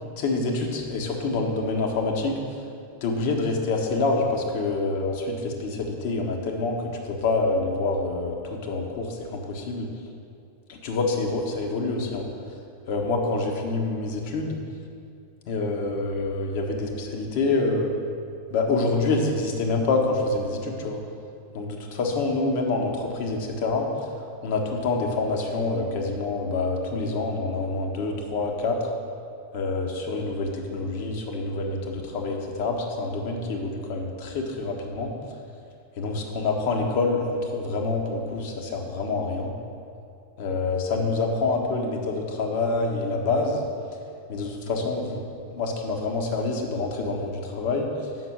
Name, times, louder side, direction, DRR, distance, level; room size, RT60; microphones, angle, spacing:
voice 1, 0.2-2.4 3.0-9.9 10.7-12.2 12.9-14.6 15.5-17.9 18.5-21.0 21.5-23.9 24.4-28.9 29.5-35.1 36.0-39.5 40.4-43.6 44.3-45.2 45.5-47.9, left 3 dB, 45° left, 2 dB, 1.3 m, -26 dB
7.8 x 6.1 x 5.9 m, 2.5 s
figure-of-eight pair, 90°, 0 cm